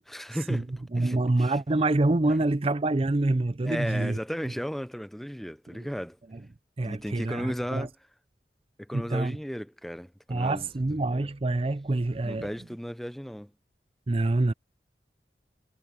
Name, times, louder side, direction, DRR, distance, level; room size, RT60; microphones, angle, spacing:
voice 1, 0.1-0.7 1.0-1.6 3.6-6.2 6.8-7.9 8.8-10.7 11.1-11.3 12.2-13.5, equal, ahead, 0.8 m, -35 dB
voice 2, 0.9-4.2 5.7-5.9 6.3-6.5 6.8-7.9 8.9-9.4 10.3-12.5 14.1-14.5, right 2 dB, 35° right, 0.5 m, -26 dB
head